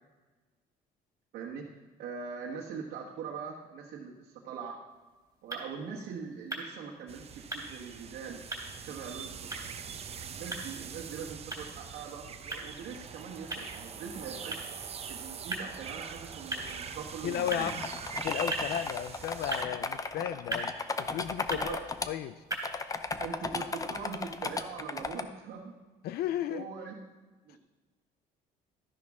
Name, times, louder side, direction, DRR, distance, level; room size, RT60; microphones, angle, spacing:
voice 1, 1.3-4.8 5.4-8.4 8.8-9.5 10.3-14.7 15.1-17.7 21.5-21.9 23.2-25.7 26.5-27.0 27.4-27.6, right 6 dB, 75° right, -3 dB, 1.4 m, -42 dB
sound 1, 4.9-22.9, right 2 dB, 20° right, 3.3 m, -43 dB
sound 2, 7.1-19.7, right 6 dB, 35° right, 0.8 m, -43 dB
voice 2, 17.2-17.8 18.1-20.7 21.0-21.8 22.1-22.4 26.0-26.7 27.5-27.6, left 11 dB, 70° left, 13 dB, 0.4 m, -34 dB
sound 3, 17.3-22.1 22.5-25.2, left 4 dB, 20° left, 0.6 m, -35 dB
12.5 x 10.5 x 3.6 m, 1.3 s
cardioid pair, 110°, 17 cm